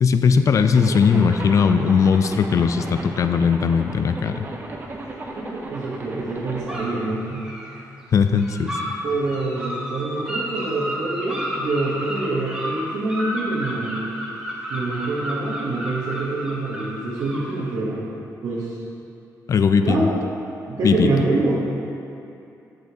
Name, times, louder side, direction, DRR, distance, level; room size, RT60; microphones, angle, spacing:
voice 1, 0.0-4.5 8.1-8.8 19.5-20.1 20.8-21.1, left 6 dB, 50° left, 9 dB, 0.3 m, -18 dB
Zipper (clothing), 0.7-6.7, right 2 dB, 30° right, 0.7 m, -35 dB
sound 1, 1.3-1.6 2.6-2.8 5.8-6.0 6.7-7.8 8.3-9.0 9.2-17.7, equal, 10° right, 1.2 m, -32 dB
voice 2, 5.3-7.4 9.0-14.0 14.7-18.1 18.4-18.7 19.8-20.1 20.7-21.7, right 2 dB, 70° right, -8 dB, 1.1 m, -25 dB
7.9 x 6.6 x 2.8 m, 2.6 s
cardioid pair, 110°, 7 cm